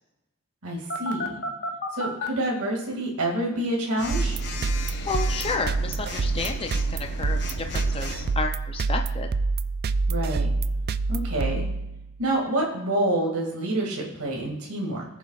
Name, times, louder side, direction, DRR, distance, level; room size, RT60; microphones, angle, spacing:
voice 1, 0.6-1.4 1.9-4.4 10.1-10.5 11.1-11.7 12.2-15.1, right 1 dB, 80° right, -1 dB, 2.2 m, -27 dB
Telephone, 0.9-2.3 4.0-8.3, left 3 dB, 50° left, 1.0 m, -34 dB
sound 1, 4.1-12.3, right 4 dB, 45° right, 0.3 m, -27 dB
voice 2, 5.1-9.3, left 4 dB, 25° left, 4 dB, 0.5 m, -31 dB
18.5 x 7.2 x 2.4 m, 0.94 s
head